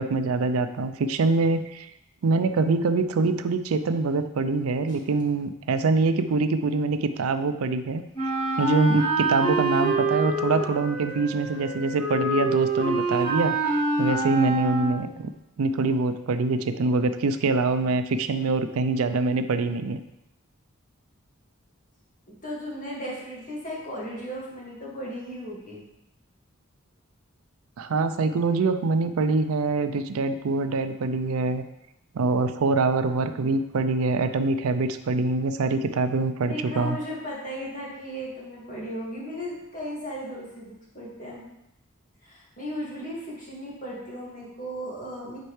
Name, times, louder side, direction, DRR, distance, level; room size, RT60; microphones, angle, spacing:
voice 1, 0.0-1.9 2.2-8.3 8.6-15.3 15.6-20.0 27.8-31.6 32.1-37.0, right 3 dB, 85° right, 10 dB, 0.4 m, -24 dB
Wind instrument woodwind instrument, 8.1-15.1, right 2 dB, 20° left, 2.5 m, -26 dB
voice 2, 22.3-25.8 33.2-33.5 36.4-41.5 42.2-45.4, equal, 35° left, -5 dB, 2.0 m, -36 dB
9.4 x 4.4 x 3.2 m, 0.85 s
head